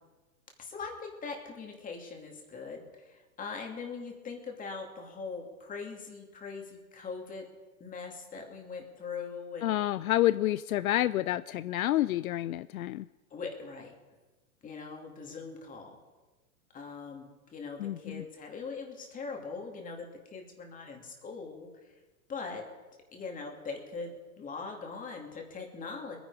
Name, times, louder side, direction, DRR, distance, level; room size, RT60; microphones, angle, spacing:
voice 1, 0.6-7.4 7.8-9.7 13.3-13.9 14.6-16.0 16.7-21.7 22.3-22.6 23.1-26.2, left 4 dB, 20° left, 2 dB, 2.6 m, -41 dB
voice 2, 9.6-13.1 17.8-18.2, left 14 dB, 70° left, 16 dB, 0.5 m, -29 dB
21.5 x 10.5 x 4.9 m, 1.2 s
hypercardioid pair, 125°, 44 cm